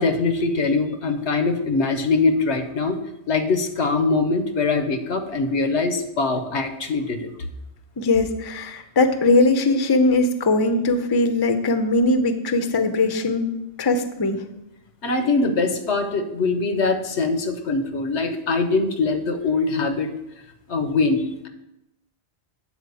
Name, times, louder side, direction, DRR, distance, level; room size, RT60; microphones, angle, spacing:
voice 1, 0.0-3.0 3.3-7.3 15.0-20.1 20.7-21.5, left 3 dB, 85° left, 7 dB, 1.2 m, -22 dB
voice 2, 8.0-13.5 13.8-14.4, left 2 dB, 30° left, 8 dB, 0.5 m, -20 dB
8.6 x 4.3 x 6.9 m, 0.88 s
omnidirectional pair, 1.1 m